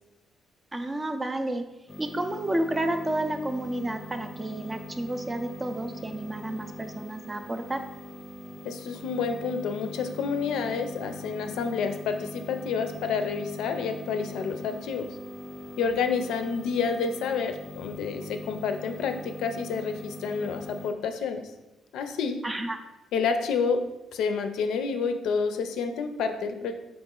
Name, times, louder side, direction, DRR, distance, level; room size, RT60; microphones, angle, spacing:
voice 1, 0.7-1.6 2.0-7.8 22.4-22.8, right 1 dB, 15° right, 7 dB, 0.3 m, -31 dB
sound 1, 1.9-20.9, equal, 15° left, 0.7 m, -42 dB
voice 2, 8.6-15.1 15.8-21.5 21.9-22.4 23.1-23.8 24.1-26.7, left 5 dB, 85° left, 7 dB, 0.4 m, -29 dB
4.8 x 3.0 x 3.7 m, 1.0 s
cardioid pair, 150°, 0 cm